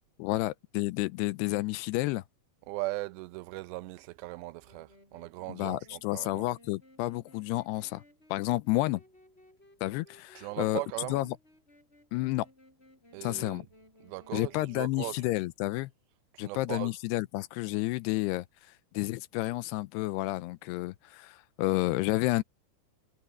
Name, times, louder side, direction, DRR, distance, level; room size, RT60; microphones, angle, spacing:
voice 1, 0.2-2.2 5.5-8.0 8.3-9.0 9.8-10.8 11.1-11.3 12.1-12.5 13.2-13.6 14.3-15.9 16.4-18.5 18.9-22.4, left 19 dB, 80° left, 2.5 m, -30 dB
voice 2, 2.6-6.5 10.4-11.3 13.1-13.7 14.0-15.3 16.3-16.9, right 21 dB, 85° right, 2.8 m, -39 dB
Wind instrument woodwind instrument, 4.6-15.6, left 1 dB, 15° left, 7.0 m, -60 dB
omnidirectional pair, 5.0 m